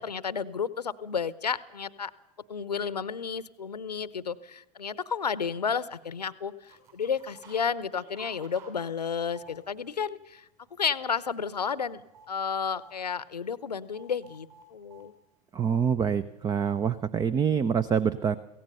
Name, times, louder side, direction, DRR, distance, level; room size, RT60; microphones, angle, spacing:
voice 1, 0.0-2.1 2.5-10.5 10.8-12.0 12.3-15.1, left 6 dB, 75° left, 18 dB, 0.9 m, -32 dB
sound 1, 6.6-7.6 7.9-10.0 10.5-10.7 11.0-12.3 12.8-13.0 13.9-15.1 16.6-16.8, right 4 dB, 45° right, 7.3 m, -52 dB
voice 2, 15.5-18.4, right 7 dB, 20° right, 17 dB, 0.7 m, -26 dB
23.0 x 17.0 x 6.7 m, 0.90 s
figure-of-eight pair, 85°, 21 cm